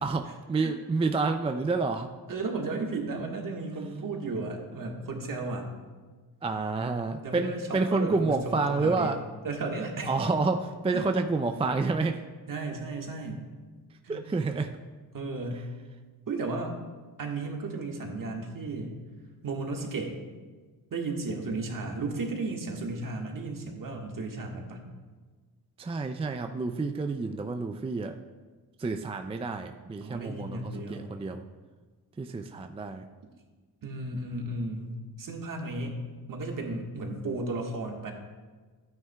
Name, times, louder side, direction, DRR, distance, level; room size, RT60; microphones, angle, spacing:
voice 1, 0.0-2.1 6.4-9.2 10.1-12.3 14.1-14.8 25.8-28.2 28.8-31.4 32.2-33.1, right 3 dB, 15° right, 7 dB, 0.4 m, -29 dB
voice 2, 2.3-5.7 7.2-9.2 9.4-10.1 10.9-11.0 12.5-13.4 14.0-14.2 15.1-15.7 16.3-16.7 17.2-19.0 19.4-20.1 20.9-24.8 30.0-31.2 33.8-36.0 36.3-38.1, right 3 dB, 55° right, 2 dB, 1.5 m, -34 dB
12.5 x 9.2 x 2.3 m, 1.4 s
cardioid pair, 95°, 40 cm